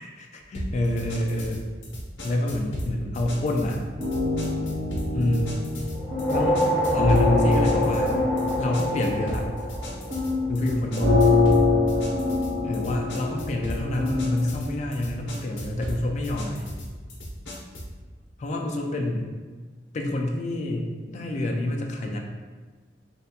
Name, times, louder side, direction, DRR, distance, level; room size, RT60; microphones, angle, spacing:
voice 1, 0.0-1.6 2.2-3.8 5.1-5.6 6.3-6.6 6.9-8.2 8.6-9.5 10.5-11.1 12.6-16.6 18.4-19.3 19.9-22.2, left 1 dB, 40° left, 1 dB, 0.3 m, -27 dB
sound 1, 0.5-18.0, equal, 85° left, 0.6 m, -36 dB
sound 2, 4.0-14.5, left 3 dB, 45° right, 0.9 m, -25 dB
sound 3, 6.0-10.5, equal, 10° right, 0.7 m, -27 dB
3.2 x 2.2 x 2.7 m, 1.4 s
head